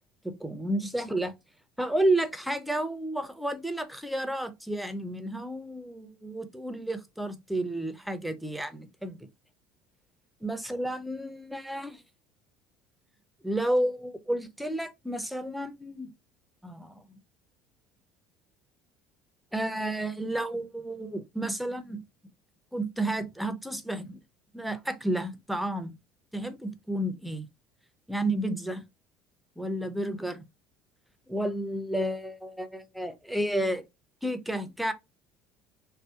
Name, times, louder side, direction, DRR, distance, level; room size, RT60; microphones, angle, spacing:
voice 1, 0.2-1.3 1.8-9.2 10.4-12.0 13.4-16.1 16.6-17.2 19.5-22.0 22.7-24.2 24.5-25.9 26.3-27.5 28.1-28.8 29.6-30.4 31.3-33.8 34.2-34.9, right 1 dB, ahead, 0.5 m, -31 dB
2.6 x 2.0 x 2.3 m
supercardioid pair, 85°, 4 cm